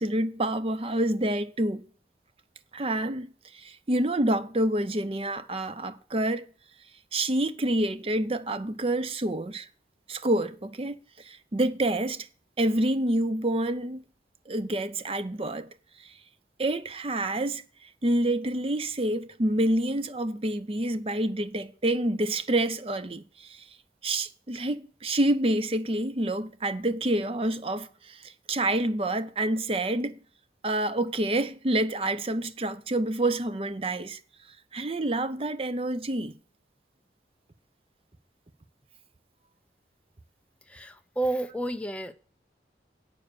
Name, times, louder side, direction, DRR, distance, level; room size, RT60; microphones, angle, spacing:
voice 1, 0.0-1.8 2.7-6.4 7.1-9.7 10.1-11.0 11.3-12.3 12.6-14.0 14.5-15.7 16.6-17.6 18.0-23.6 24.0-30.2 30.6-34.2 34.7-36.3, right 1 dB, 30° right, 0.6 m, -28 dB
voice 2, 40.7-42.1, right 2 dB, 5° left, 0.6 m, -30 dB
8.4 x 6.8 x 6.6 m
head